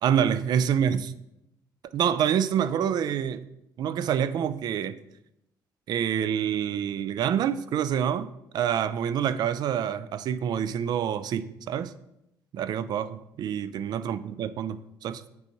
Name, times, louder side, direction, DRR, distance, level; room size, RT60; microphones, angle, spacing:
voice 1, 0.0-1.1 1.9-3.5 3.8-5.0 5.9-11.9 12.5-15.3, right 9 dB, 60° right, 0.3 m, -27 dB
6.9 x 4.7 x 3.0 m
cardioid pair, 100°, 8 cm